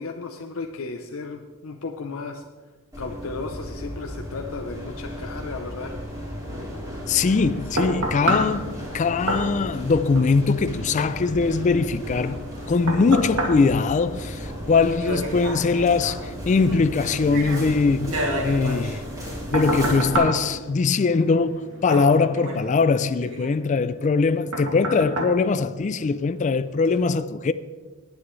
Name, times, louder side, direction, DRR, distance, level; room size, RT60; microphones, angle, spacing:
voice 1, 0.0-2.4 3.0-5.9, left 4 dB, 65° left, 0.7 m, -34 dB
sound 1, 2.9-20.2, equal, 15° right, 3.6 m, -35 dB
voice 2, 7.1-12.4 12.7-19.0 19.5-27.5, left 4 dB, 35° left, 0.3 m, -21 dB
sound 2, 7.1-26.3 26.8-27.0, right 1 dB, 70° right, 2.4 m, -31 dB
19.5 x 8.3 x 3.2 m
head